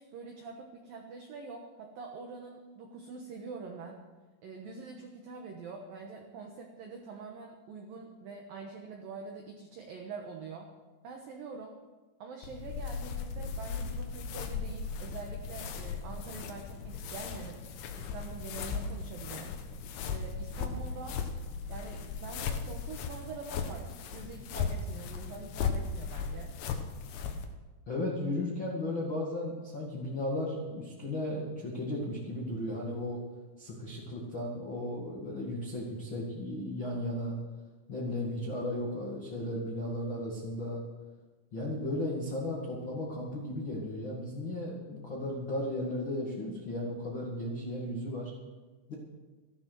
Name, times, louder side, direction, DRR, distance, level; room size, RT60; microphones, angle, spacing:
voice 1, 0.0-4.0 4.4-10.7 11.0-11.8 12.2-17.6 18.0-19.6 20.1-21.2 21.7-26.5, right 4 dB, 80° right, 1 dB, 2.0 m, -45 dB
sound 1, 12.4-27.5, left 5 dB, 70° left, 3.2 m, -37 dB
voice 2, 27.9-33.2 33.6-37.3 37.9-40.8 41.5-48.3 48.9-49.0, left 1 dB, 55° left, -4 dB, 1.3 m, -35 dB
15.0 x 12.0 x 6.1 m, 1.3 s
omnidirectional pair, 5.9 m